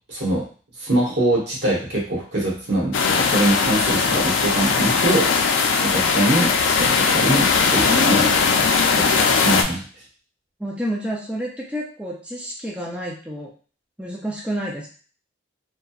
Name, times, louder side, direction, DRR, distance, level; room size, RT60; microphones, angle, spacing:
voice 1, 0.1-0.4 0.8-8.3 8.8-9.8, right 1 dB, 65° right, -4 dB, 1.0 m, -23 dB
sound 1, 2.9-9.6, left 5 dB, 85° left, 0.4 m, -19 dB
voice 2, 7.8-8.5 10.6-13.5 14.0-14.9, equal, 5° right, -3 dB, 0.4 m, -29 dB
2.8 x 2.2 x 2.3 m, 0.39 s
head